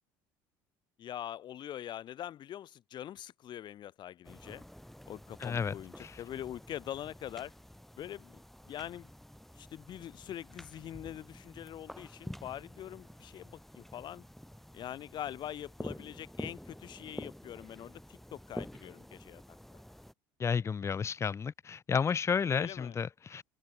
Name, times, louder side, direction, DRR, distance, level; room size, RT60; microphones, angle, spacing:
voice 1, 1.0-4.6 5.1-7.5 8.0-8.3 8.6-9.1 9.6-14.2 14.7-19.4 19.7-19.8 22.5-23.0, left 11 dB, 50° left, 6.9 m, -43 dB
sound 1, 4.2-20.1, equal, ahead, 6.2 m, -49 dB
voice 2, 5.4-5.7 6.0-6.2 20.4-23.4, left 6 dB, 30° left, 1.5 m, -32 dB
open air
supercardioid pair, 105°, 10 cm